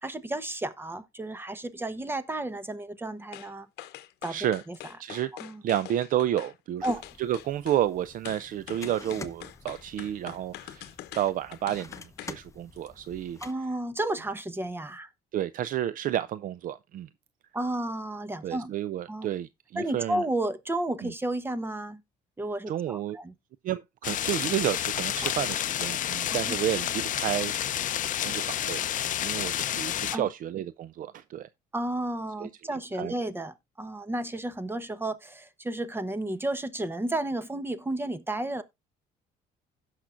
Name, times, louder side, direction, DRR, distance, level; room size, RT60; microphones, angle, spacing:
voice 1, 0.0-3.7 4.2-4.4 4.7-4.8 5.4-5.6 6.8-7.0 13.4-15.1 17.5-18.7 19.1-19.3 19.8-22.0 22.4-23.3 25.2-25.3 26.1-26.6 30.1-30.3 31.7-38.6, right 1 dB, 15° right, 1.0 m, -32 dB
sound 1, 3.3-3.5 3.8-6.5 6.8-7.8 8.3-12.4 12.8-12.9, left 14 dB, 80° left, 0.8 m, -44 dB
voice 2, 4.3-4.6 5.0-5.3 5.6-13.4 15.3-17.1 18.4-20.2 21.0-21.1 22.7-23.2 23.6-27.5 27.9-31.5 32.4-33.1, right 12 dB, 55° right, 0.4 m, -31 dB
sound 2, 6.8-13.5, left 4 dB, 20° left, 0.9 m, -48 dB
sound 3, 24.0-30.2, left 11 dB, 50° left, 0.6 m, -30 dB
16.5 x 5.8 x 2.5 m
cardioid pair, 110°, 17 cm